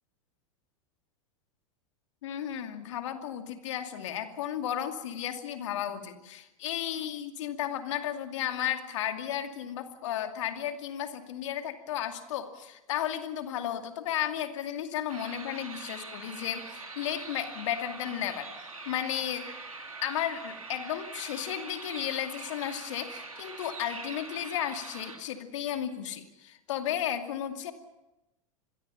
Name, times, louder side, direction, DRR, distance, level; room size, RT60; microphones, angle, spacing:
voice 1, 2.2-18.5 18.9-19.5 20.0-27.7, left 10 dB, 60° left, 6 dB, 2.5 m, -34 dB
sound 1, 15.1-25.2, right 3 dB, 85° right, 3.4 m, -43 dB
27.0 x 22.0 x 5.7 m, 0.97 s
figure-of-eight pair, 90°, 17 cm